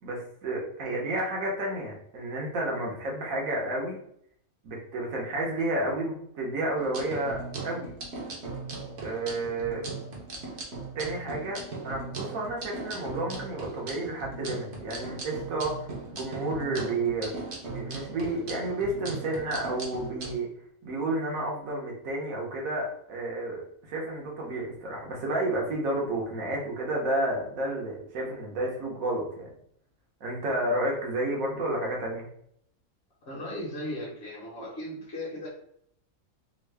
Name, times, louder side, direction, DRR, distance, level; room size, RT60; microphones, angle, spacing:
voice 1, 0.0-4.0 4.6-7.9 9.0-9.8 10.9-17.4 17.7-20.5 20.8-23.6 23.9-29.5 30.2-32.3, right 1 dB, 70° right, -1 dB, 1.4 m, -31 dB
sound 1, 6.8-20.3, right 3 dB, 55° right, 1.0 m, -38 dB
voice 2, 33.2-35.5, left 1 dB, 50° left, -6 dB, 1.2 m, -37 dB
3.6 x 2.1 x 3.3 m, 0.68 s
omnidirectional pair, 1.5 m